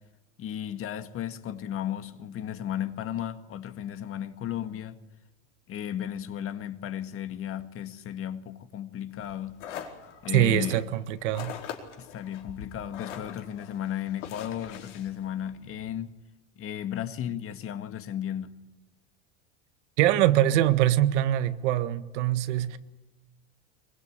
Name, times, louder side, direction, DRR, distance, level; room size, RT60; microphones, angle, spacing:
voice 1, 0.4-5.0 5.7-9.6 10.2-10.8 12.0-16.2 16.6-18.5, left 10 dB, 40° left, 1.8 m, -34 dB
sound 1, 9.2-15.9, left 8 dB, 85° left, 4.6 m, -43 dB
voice 2, 10.3-11.5 20.0-22.8, right 13 dB, 75° right, 1.6 m, -23 dB
22.5 x 22.5 x 8.8 m
supercardioid pair, 120°, 35 cm